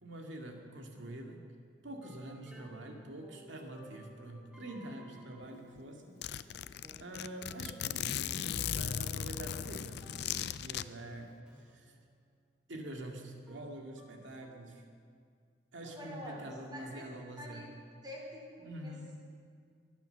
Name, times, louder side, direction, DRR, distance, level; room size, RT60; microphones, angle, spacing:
voice 1, 0.0-1.4 1.8-6.5 7.0-12.0 12.7-14.8 15.7-17.7 18.6-19.1, right 1 dB, 85° right, 2 dB, 2.2 m, -46 dB
sound 1, 2.0-14.7, right 1 dB, 5° right, 1.9 m, -59 dB
Zipper (clothing), 5.4-5.5 5.8-5.9 6.2-10.8, left 9 dB, 60° left, 0.4 m, -37 dB
voice 2, 15.8-17.1 17.4-17.7 18.0-19.2, equal, 25° right, -2 dB, 3.9 m, -47 dB
22.5 x 9.1 x 6.9 m, 2.2 s
head